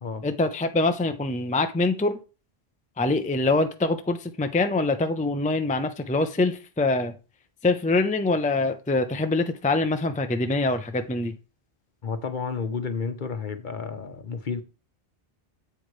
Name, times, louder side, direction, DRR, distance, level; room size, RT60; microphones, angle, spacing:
voice 1, 0.2-2.2 3.0-7.1 7.6-11.3, left 2 dB, 10° left, 0.5 m, -24 dB
voice 2, 12.0-14.6, left 5 dB, 50° left, 1.0 m, -31 dB
8.1 x 7.9 x 3.2 m
omnidirectional pair, 1.0 m